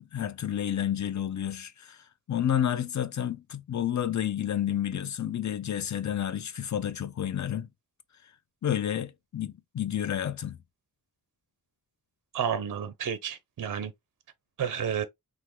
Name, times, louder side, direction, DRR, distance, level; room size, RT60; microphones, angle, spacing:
voice 1, 0.0-7.7 8.6-10.6, left 10 dB, 50° left, 0.5 m, -30 dB
voice 2, 12.3-13.9 14.6-15.0, right 8 dB, 55° right, 0.5 m, -31 dB
3.4 x 2.1 x 2.9 m
wide cardioid pair, 75°, 39 cm